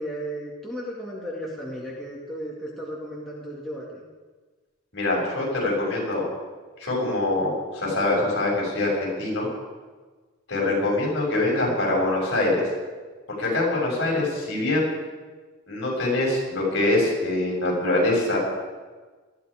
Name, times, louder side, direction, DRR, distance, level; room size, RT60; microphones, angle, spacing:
voice 1, 0.0-4.0, equal, ahead, -6 dB, 2.2 m, -34 dB
voice 2, 4.9-6.3 6.8-9.5 10.5-12.7 13.4-14.9 15.7-18.4, left 2 dB, 50° left, -3 dB, 7.0 m, -24 dB
20.0 x 14.0 x 5.0 m, 1.4 s
head